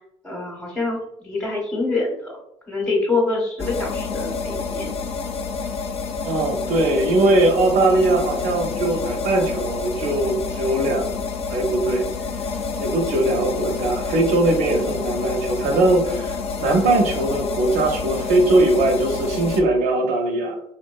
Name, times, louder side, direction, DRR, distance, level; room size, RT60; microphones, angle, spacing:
voice 1, 0.2-2.3 2.7-4.9, left 3 dB, 5° left, -3 dB, 0.8 m, -25 dB
sound 1, 3.6-19.6, left 5 dB, 50° left, 0.4 m, -28 dB
voice 2, 6.2-11.2 11.5-12.0 12.8-20.5, right 2 dB, 85° right, 3 dB, 0.5 m, -20 dB
2.6 x 2.1 x 2.2 m, 0.78 s
supercardioid pair, 70°, 13 cm